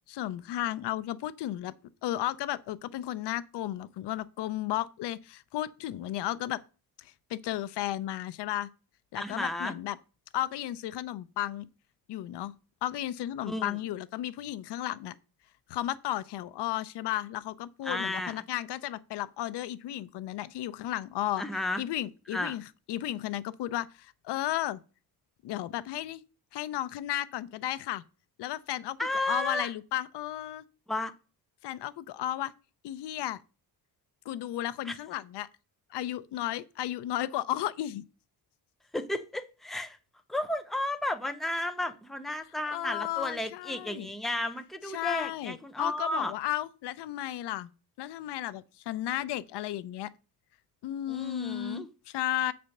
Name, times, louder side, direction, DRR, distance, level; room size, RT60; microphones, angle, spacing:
voice 1, 0.1-1.7 2.0-6.6 7.0-8.7 9.1-10.0 10.3-11.7 12.1-12.5 12.8-15.1 15.7-21.4 21.8-24.8 25.4-26.2 26.5-28.0 28.4-29.0 29.2-30.6 31.6-32.5 32.8-33.4 34.3-35.5 35.9-38.0 42.7-44.1 44.9-47.7 48.0-50.1 50.8-52.5, left 13 dB, 90° left, 0.7 m, -34 dB
voice 2, 9.2-9.7 13.4-13.7 17.8-18.4 21.4-21.8 22.3-22.6 29.0-29.7 30.9-31.1 34.8-35.0 38.9-40.0 40.3-46.3 51.1-51.9, left 1 dB, ahead, 0.7 m, -33 dB
8.0 x 4.3 x 6.5 m
cardioid pair, 130°, 40 cm